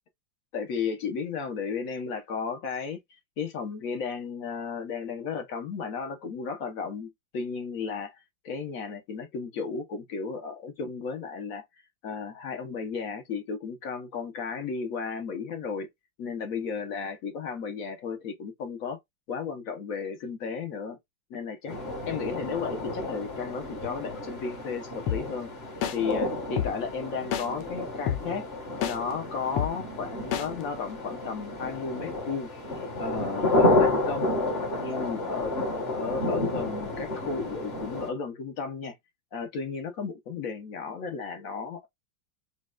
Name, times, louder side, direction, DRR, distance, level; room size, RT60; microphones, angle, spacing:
voice 1, 0.5-3.0 3.4-11.6 12.0-15.9 16.2-19.0 19.3-21.0 21.3-21.8 22.1-25.5 25.9-28.4 28.8-32.5 33.0-34.3 34.8-35.5 35.9-38.9 39.3-41.9, left 5 dB, 60° left, 1.0 m, -34 dB
sound 1, 21.7-38.1, left 2 dB, 30° left, 1.6 m, -30 dB
sound 2, 25.1-25.2 25.8-26.0 26.6-26.7 27.3-27.5 28.1-28.2 28.8-29.0 29.6-29.7 30.3-30.5, left 9 dB, 85° left, 1.6 m, -27 dB
5.3 x 2.3 x 2.3 m
omnidirectional pair, 2.3 m